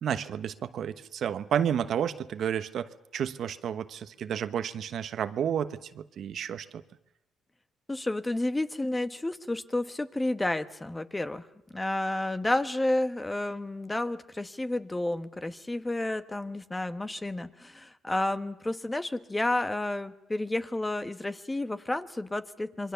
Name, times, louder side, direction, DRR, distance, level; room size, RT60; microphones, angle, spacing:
voice 1, 0.0-6.7, right 8 dB, 65° right, 11 dB, 1.1 m, -31 dB
voice 2, 7.9-11.4 11.7-22.9, left 1 dB, 15° left, 11 dB, 1.2 m, -31 dB
27.0 x 23.0 x 7.0 m, 0.88 s
cardioid pair, 90°, 0 cm